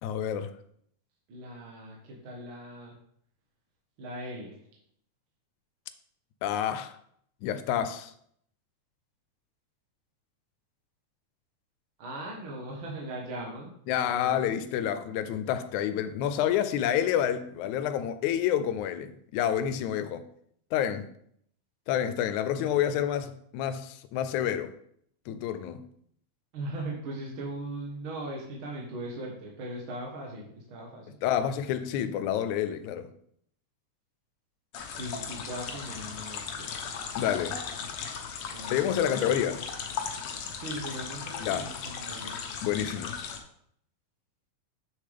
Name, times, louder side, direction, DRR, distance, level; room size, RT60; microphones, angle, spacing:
voice 1, 0.0-0.5 6.4-7.0 7.4-8.1 13.9-20.2 20.7-21.1 21.9-24.7 25.3-25.8 31.2-33.1 37.2-37.6 38.7-39.6 41.4-41.7 42.6-43.1, left 10 dB, 85° left, 2.0 m, -28 dB
voice 2, 1.3-3.0 4.0-4.6 12.0-14.5 22.7-22.8 26.5-31.2 35.0-36.7 38.5-39.5 40.6-42.5, right 1 dB, 55° right, 1.7 m, -39 dB
sound 1, 34.7-43.4, left 6 dB, 65° left, 1.5 m, -37 dB
7.7 x 6.5 x 3.4 m
omnidirectional pair, 3.3 m